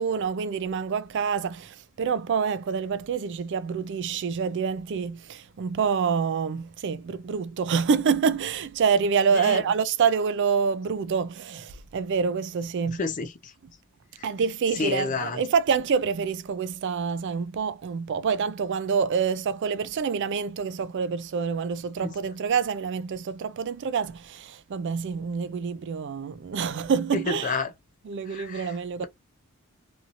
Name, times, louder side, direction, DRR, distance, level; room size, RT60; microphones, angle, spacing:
voice 1, 0.0-13.0 14.2-27.5 28.1-29.0, right 6 dB, 55° right, 0.4 m, -27 dB
voice 2, 9.3-9.6 12.9-13.5 14.2-14.3 14.8-15.4 22.0-22.1 27.1-27.7 28.3-28.8, left 4 dB, 35° left, 0.5 m, -30 dB
2.7 x 2.7 x 2.5 m
head